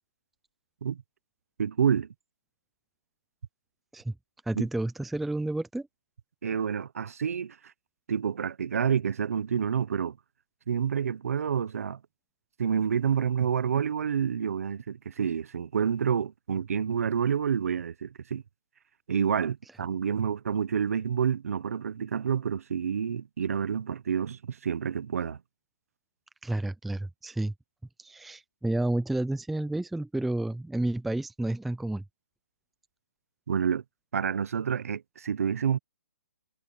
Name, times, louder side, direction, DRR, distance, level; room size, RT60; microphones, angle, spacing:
voice 1, 1.6-2.1 4.6-4.7 6.4-7.6 8.1-10.2 10.7-12.0 12.6-18.4 19.1-25.4 33.5-33.8 34.1-35.8, right 7 dB, 55° right, 1.0 m, -28 dB
voice 2, 4.5-5.9 26.4-27.5 28.0-32.0, right 1 dB, ahead, 0.4 m, -30 dB
hypercardioid pair, 170°, 10 cm